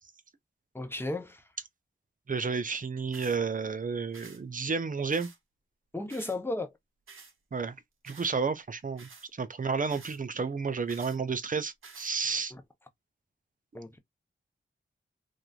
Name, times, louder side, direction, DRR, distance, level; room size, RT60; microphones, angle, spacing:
voice 1, 0.7-1.4 5.9-6.7 12.5-12.6 13.7-14.0, left 2 dB, 10° left, 0.8 m, -34 dB
voice 2, 2.3-5.3 7.5-7.8 8.0-9.1 9.4-12.5, right 5 dB, 40° right, 0.5 m, -31 dB
sound 1, 3.1-3.4 4.1-4.4 5.1-5.4 6.1-6.4 7.1-7.3 8.1-8.3 9.0-9.3 9.9-10.2 10.9-11.2 11.8-12.1, right 5 dB, 85° right, 0.9 m, -50 dB
3.0 x 2.5 x 2.3 m
wide cardioid pair, 75°, 20 cm